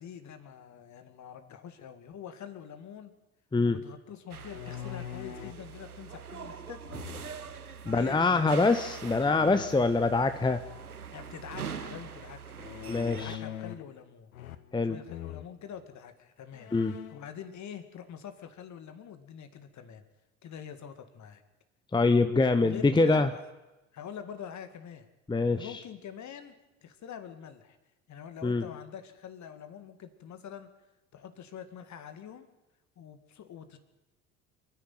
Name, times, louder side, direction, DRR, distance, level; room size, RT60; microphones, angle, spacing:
voice 1, 0.0-3.1 3.6-6.8 7.8-8.6 11.1-12.6 13.1-14.3 14.8-16.7 17.1-20.0 20.4-21.4 22.6-23.3 23.9-25.1 25.6-27.8 28.1-30.7 31.1-32.5 33.0-33.8, left 8 dB, 40° left, 8 dB, 2.1 m, -45 dB
voice 2, 3.5-3.8 7.9-10.6 12.9-13.4 14.7-15.0 16.7-17.0 21.9-23.3 25.3-25.8 28.4-28.7, left 3 dB, 10° left, 10 dB, 1.0 m, -25 dB
sound 1, 4.3-5.7 6.8-7.5 9.0-9.6 12.6-13.9 14.3-14.8 15.1-15.5 16.1-16.2 16.5-17.3, left 11 dB, 75° left, 1.0 m, -42 dB
sound 2, 4.3-13.4, right 6 dB, 90° right, 0.7 m, -43 dB
28.0 x 10.5 x 9.3 m, 1.1 s
figure-of-eight pair, 60°, 43 cm